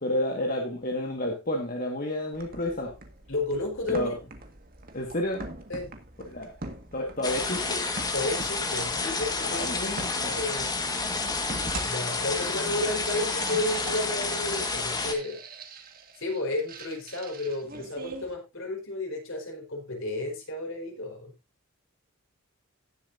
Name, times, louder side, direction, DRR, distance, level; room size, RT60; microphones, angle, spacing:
voice 1, 0.0-2.9 3.9-4.1 4.9-5.4 6.3-6.5 6.9-7.9 9.4-10.4, left 1 dB, 40° left, 1 dB, 1.7 m, -30 dB
sound 1, 2.3-18.3, right 2 dB, 40° right, 1.8 m, -43 dB
voice 2, 3.3-4.2 5.7-5.9 8.1-9.7 10.2-10.7 11.8-15.4 16.2-21.3, left 2 dB, 65° left, 1 dB, 4.5 m, -32 dB
sound 2, 7.2-15.1, left 3 dB, 20° left, 1.6 m, -30 dB
18.0 x 7.3 x 2.7 m, 0.23 s
head